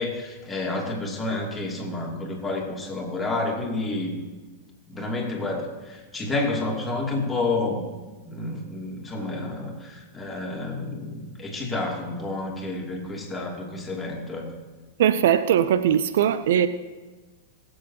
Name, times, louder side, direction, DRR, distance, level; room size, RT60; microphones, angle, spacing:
voice 1, 0.0-4.2 4.9-7.8 8.2-14.5, left 2 dB, 10° left, 2.7 m, -30 dB
voice 2, 15.0-16.7, right 9 dB, 65° right, 0.5 m, -20 dB
20.0 x 8.0 x 2.8 m
figure-of-eight pair, 95°, 0 cm